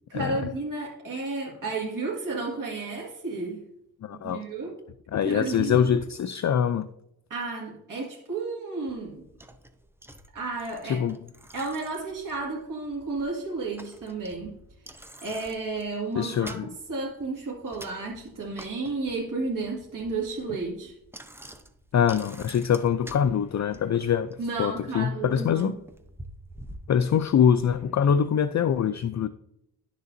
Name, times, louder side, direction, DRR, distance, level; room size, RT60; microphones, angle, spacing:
voice 1, 0.1-3.6 4.1-4.8 5.2-6.0 7.3-9.2 10.3-11.0 11.5-14.5 15.2-16.5 16.9-20.9 24.4-25.7, right 3 dB, 55° right, 2.1 m, -32 dB
voice 2, 4.0-4.4 5.1-6.8 10.8-11.2 16.2-16.7 21.9-25.8 26.9-29.3, left 8 dB, 45° left, 0.4 m, -24 dB
Bicycle, 8.9-27.7, right 1 dB, 5° right, 0.7 m, -49 dB
11.0 x 6.8 x 2.6 m
cardioid pair, 85°, 39 cm